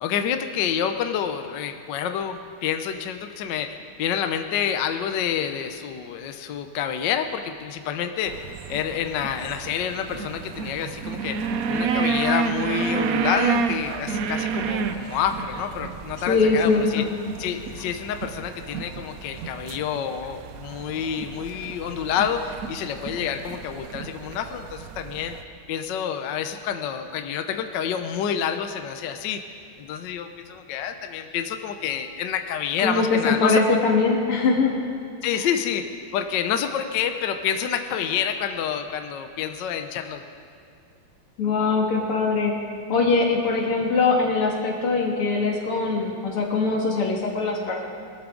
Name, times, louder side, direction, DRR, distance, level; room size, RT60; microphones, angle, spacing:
voice 1, 0.0-8.4 8.7-11.4 11.7-17.0 17.4-25.4 25.7-29.4 29.8-33.6 35.2-35.9 36.1-40.2, left 8 dB, 65° left, 7 dB, 1.2 m, -28 dB
sound 1, 8.3-25.4, right 5 dB, 85° right, 0.7 m, -30 dB
voice 2, 16.3-17.1 32.8-34.8 41.4-42.5 42.9-47.8, left 4 dB, 85° left, -1 dB, 2.8 m, -22 dB
21.5 x 13.0 x 3.8 m, 2.4 s
omnidirectional pair, 2.4 m